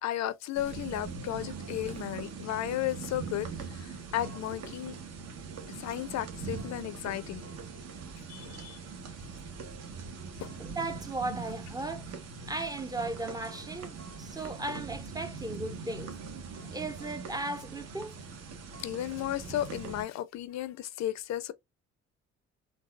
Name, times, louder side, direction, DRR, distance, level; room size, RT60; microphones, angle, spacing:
voice 1, 0.0-4.9 5.7-7.4 8.3-8.8 10.4-10.5 18.8-21.5, left 13 dB, 65° left, 0.5 m, -34 dB
sound 1, 0.5-20.0, right 5 dB, 60° right, 1.0 m, -42 dB
voice 2, 10.6-12.1 12.5-16.1 16.7-18.1, right 2 dB, 15° right, 0.5 m, -36 dB
3.9 x 2.4 x 2.3 m
cardioid pair, 95°, 29 cm